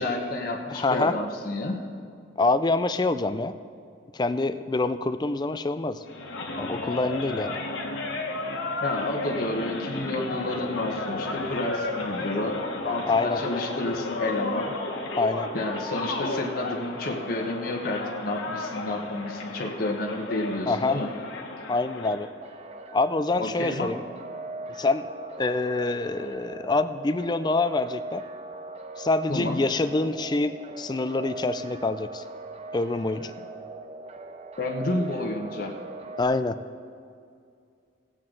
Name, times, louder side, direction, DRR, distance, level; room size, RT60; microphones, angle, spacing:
voice 1, 0.0-1.8 8.8-12.6 12.8-14.7 15.5-21.1 23.4-23.9 29.3-29.6 34.6-35.7, left 2 dB, 50° left, 0 dB, 1.2 m, -30 dB
voice 2, 0.7-1.1 2.4-3.5 4.1-6.0 6.6-7.6 13.1-13.4 15.2-15.5 20.7-21.0 21.7-22.3 22.9-24.0 24.8-25.1 25.4-28.2 29.0-32.2 32.7-33.3 36.2-36.6, left 3 dB, 20° left, 11 dB, 0.4 m, -26 dB
sound 1, 6.0-22.3, left 2 dB, 80° left, 1.3 m, -33 dB
sound 2, 22.4-36.2, right 2 dB, 35° right, 0.5 m, -40 dB
19.0 x 7.6 x 3.9 m, 2.3 s
head